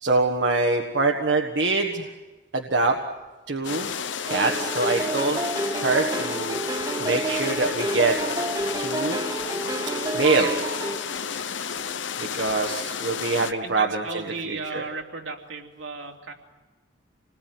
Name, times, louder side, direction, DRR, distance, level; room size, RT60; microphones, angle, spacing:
voice 1, 0.0-2.1 2.5-3.0 3.5-3.9 4.3-5.4 5.8-6.6 7.0-8.2 8.8-9.2 10.1-10.5 12.2-14.0 14.5-14.8, right 3 dB, 65° right, 3 dB, 1.5 m, -24 dB
sound 1, 3.6-13.5, left 7 dB, 75° left, 0.9 m, -32 dB
sound 2, 4.3-11.0, right 2 dB, 20° right, 1.8 m, -29 dB
voice 2, 13.6-16.3, right 3 dB, 85° right, 0 dB, 3.1 m, -35 dB
27.0 x 20.0 x 9.4 m, 1.2 s
head